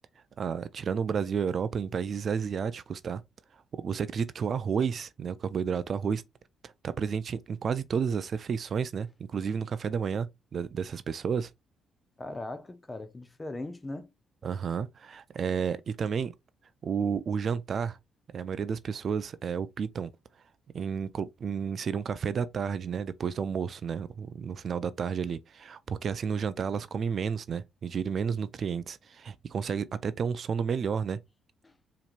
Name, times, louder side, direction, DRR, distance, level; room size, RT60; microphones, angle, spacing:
voice 1, 0.4-3.2 3.7-6.2 6.6-11.5 14.4-16.3 16.8-18.0 18.3-20.1 20.7-31.2, right 6 dB, 50° right, 0.3 m, -31 dB
voice 2, 12.2-14.1 31.6-31.7, left 2 dB, 20° left, 0.6 m, -39 dB
4.3 x 2.9 x 2.5 m
cardioid pair, 90°, 0 cm